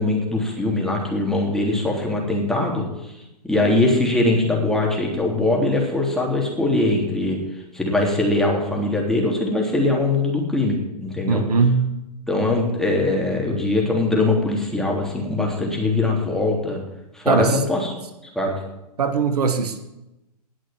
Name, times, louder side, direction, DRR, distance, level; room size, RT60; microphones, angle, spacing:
voice 1, 0.0-3.2 3.4-7.4 7.7-11.4 12.3-16.8 17.1-17.9 18.3-18.6, left 2 dB, ahead, -1 dB, 3.3 m, -21 dB
voice 2, 11.3-11.9 17.3-17.6 19.0-19.8, right 5 dB, 70° right, 9 dB, 1.7 m, -20 dB
19.0 x 6.3 x 8.9 m, 0.93 s
hypercardioid pair, 120°, 21 cm